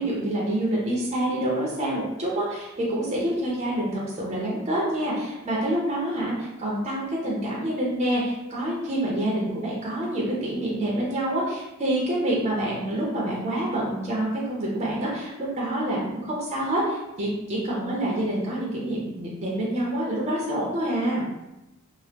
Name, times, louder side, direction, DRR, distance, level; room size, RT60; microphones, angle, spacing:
voice 1, 0.0-21.2, right 1 dB, 30° right, -5 dB, 0.6 m, -27 dB
2.9 x 2.1 x 3.4 m, 0.96 s
head